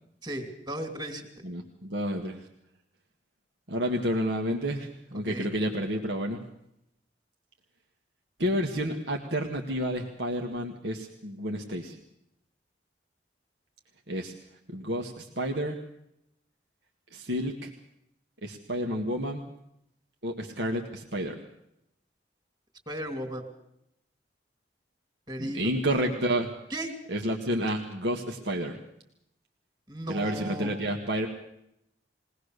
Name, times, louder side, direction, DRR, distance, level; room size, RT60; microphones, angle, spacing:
voice 1, 0.2-1.3 5.3-5.5 22.9-23.4 25.3-25.7 26.7-26.9 29.9-30.7, right 1 dB, 25° right, 5 dB, 2.9 m, -35 dB
voice 2, 1.4-2.5 3.7-6.4 8.4-12.0 14.1-14.3 14.7-15.8 17.1-17.7 18.4-19.4 20.2-21.4 25.4-26.5 27.1-28.8 30.1-31.3, equal, 75° right, 2 dB, 1.8 m, -30 dB
22.0 x 18.5 x 6.7 m, 0.79 s
head